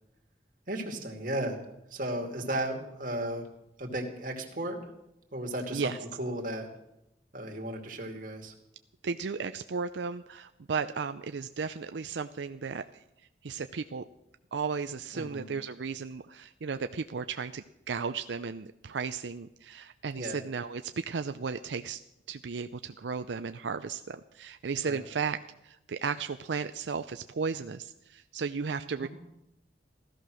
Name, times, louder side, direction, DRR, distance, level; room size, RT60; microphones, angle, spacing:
voice 1, 0.7-1.6 1.9-3.5 3.8-4.8 5.3-6.7 7.3-8.5 15.1-15.5 20.2-20.4 24.8-25.0 29.0-29.1, right 1 dB, 50° right, 2 dB, 2.5 m, -35 dB
voice 2, 9.0-12.8 13.4-14.0 14.5-22.0 22.3-29.1, right 5 dB, 85° right, 9 dB, 0.5 m, -35 dB
16.0 x 13.5 x 6.3 m, 0.85 s
head